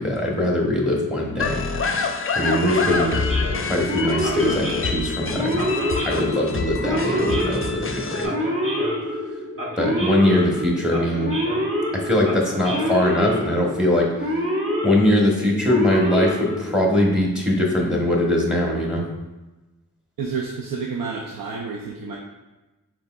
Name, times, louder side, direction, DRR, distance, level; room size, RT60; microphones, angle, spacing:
voice 1, 0.0-1.6 2.3-3.2 3.7-5.7 6.0-8.3 9.8-11.3 11.9-14.1 14.8-19.0, left 1 dB, ahead, -1 dB, 1.0 m, -21 dB
sound 1, 1.4-8.3, left 4 dB, 40° left, 0.5 m, -27 dB
Male speech man speaking / Siren, 2.4-17.1, equal, 40° right, 1.2 m, -26 dB
voice 2, 20.2-22.2, right 5 dB, 90° right, 0 dB, 0.5 m, -30 dB
5.4 x 3.9 x 2.3 m, 1.1 s
cardioid pair, 45°, 33 cm